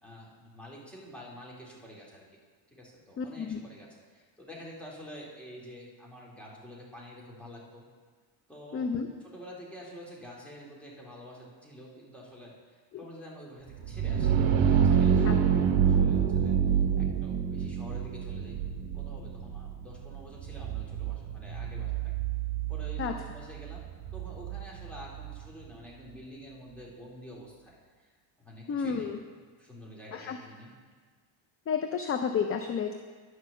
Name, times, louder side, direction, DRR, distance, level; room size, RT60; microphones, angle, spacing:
voice 1, 0.0-2.2 2.7-7.8 8.5-8.9 9.2-15.5 15.8-16.5 17.0-18.7 18.9-22.1 22.7-23.8 24.1-28.1 28.4-29.1 29.6-30.7, equal, ahead, -5 dB, 2.5 m, -48 dB
voice 2, 3.2-3.6 8.7-9.1 12.9-13.0 15.2-15.4 23.0-23.1 28.7-29.2 30.1-30.4 31.7-32.9, left 6 dB, 30° left, 6 dB, 0.5 m, -31 dB
sound 1, 13.7-25.4, right 8 dB, 60° right, 0.9 m, -27 dB
10.0 x 6.4 x 6.6 m, 1.5 s
cardioid pair, 130°, 49 cm